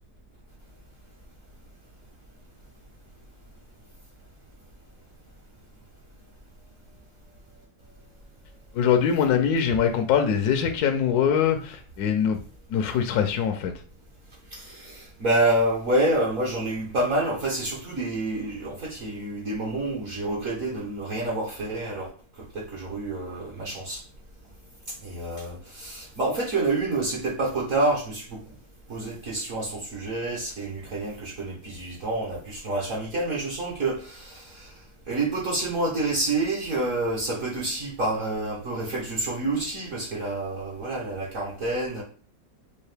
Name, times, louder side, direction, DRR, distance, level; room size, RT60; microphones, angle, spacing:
voice 1, 8.7-12.4 12.7-13.7, left 7 dB, 70° left, 6 dB, 1.0 m, -23 dB
voice 2, 14.5-22.1 22.4-24.0 25.0-28.4 28.9-34.8 35.1-42.0, right 2 dB, 55° right, -4 dB, 1.2 m, -28 dB
4.6 x 2.5 x 3.3 m, 0.40 s
omnidirectional pair, 2.0 m